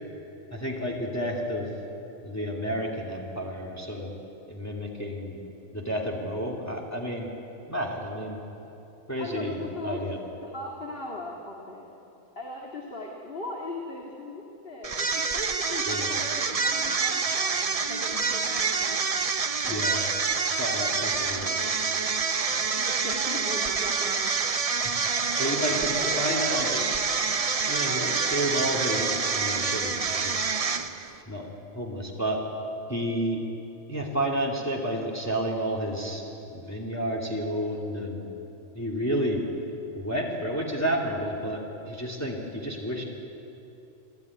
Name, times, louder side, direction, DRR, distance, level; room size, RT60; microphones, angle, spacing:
voice 1, 0.5-1.7 2.2-4.1 4.5-5.4 5.7-7.3 7.7-8.4 9.1-10.2 15.8-16.1 19.7-20.0 20.6-21.6 25.4-27.0 27.7-30.5 31.3-31.5 31.7-32.4 32.9-33.4 33.9-36.2 36.5-38.3 38.8-39.4 39.9-43.0, equal, 10° left, -2 dB, 2.5 m, -30 dB
voice 2, 9.2-10.0 10.4-11.9 12.4-19.0 19.6-19.8 22.6-24.2 25.1-26.2 26.5-27.0, left 2 dB, 45° left, -1 dB, 2.4 m, -39 dB
sound 1, 14.8-31.2, right 5 dB, 35° right, 0.6 m, -27 dB
27.0 x 15.0 x 9.6 m, 2.9 s
omnidirectional pair, 1.4 m